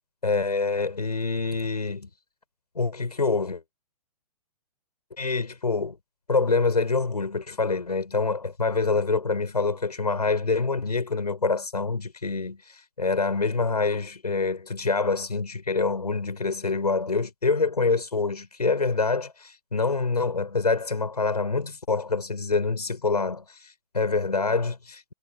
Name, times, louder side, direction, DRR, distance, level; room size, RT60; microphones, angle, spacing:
voice 1, 0.2-2.1 2.7-3.6 5.2-6.0 6.3-25.1, left 4 dB, 85° left, 7.7 m, -26 dB
figure-of-eight pair, 120°, 20 cm